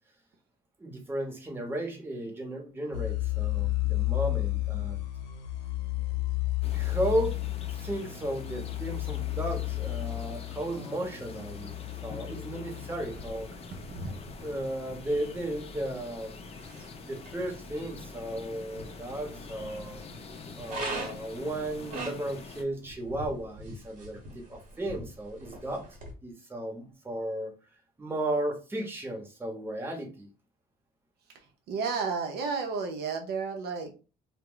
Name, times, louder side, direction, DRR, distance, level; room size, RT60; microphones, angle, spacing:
voice 1, 0.8-5.0 6.7-11.7 12.0-13.5 14.4-16.3 17.0-20.0 20.6-25.8 26.2-27.5 28.0-30.3, right 1 dB, 15° right, 2 dB, 0.8 m, -34 dB
sound 1, 2.9-13.4, left 19 dB, 80° left, 0.7 m, -32 dB
sound 2, 6.6-22.6, left 4 dB, 35° left, 0.5 m, -46 dB
sound 3, 13.0-26.1, right 2 dB, 50° right, 0.9 m, -44 dB
voice 2, 31.7-33.9, right 5 dB, 75° right, 4 dB, 0.5 m, -32 dB
2.1 x 2.0 x 3.7 m, 0.33 s
cardioid pair, 110°, 17 cm